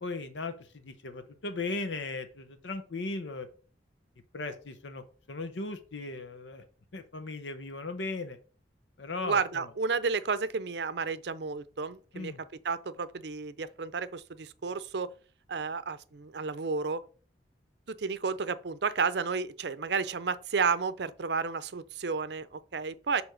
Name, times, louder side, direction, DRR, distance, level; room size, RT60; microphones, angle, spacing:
voice 1, 0.0-3.5 4.3-6.6 6.9-8.4 9.0-9.6 12.1-12.4, left 3 dB, 85° left, 0.8 m, -37 dB
voice 2, 9.2-12.3 12.6-15.1 15.5-17.0 17.9-23.2, right 5 dB, 65° right, 0.6 m, -32 dB
7.0 x 3.4 x 6.2 m
head